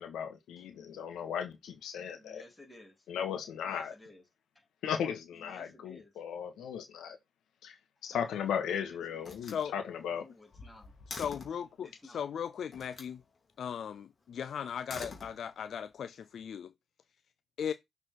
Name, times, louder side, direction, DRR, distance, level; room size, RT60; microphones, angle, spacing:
voice 1, 0.0-2.4 3.1-3.9 4.8-7.2 7.6-7.7 8.0-10.2, left 8 dB, 75° left, 1.6 m, -36 dB
voice 2, 2.1-3.0 3.6-4.2 4.5-4.7 5.3-6.1 8.1-8.4 8.8-9.3 10.1-10.9 11.8-12.3, left 1 dB, 10° left, 3.4 m, -55 dB
Slam, 8.1-8.7 9.2-11.7 12.7-13.2 14.7-15.8, left 4 dB, 35° left, 2.8 m, -47 dB
voice 3, 9.4-9.7 11.1-13.2 13.6-16.7 17.6-17.7, left 8 dB, 60° left, 0.4 m, -37 dB
6.5 x 4.3 x 4.6 m
cardioid pair, 90°, 0 cm